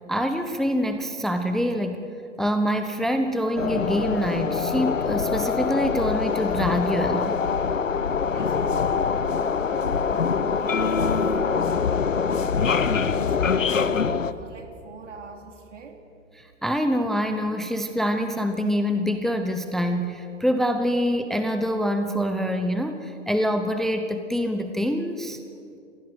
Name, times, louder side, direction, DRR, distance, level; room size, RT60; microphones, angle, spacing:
voice 1, 0.1-2.0 2.4-7.4 16.4-25.4, equal, ahead, 7 dB, 0.9 m, -25 dB
sound 1, 3.6-14.3, left 5 dB, 85° left, 1.1 m, -24 dB
voice 2, 8.3-10.1 10.5-16.0, right 4 dB, 70° right, 4 dB, 3.5 m, -43 dB
28.5 x 16.5 x 8.1 m, 2.6 s
figure-of-eight pair, 110°, 38 cm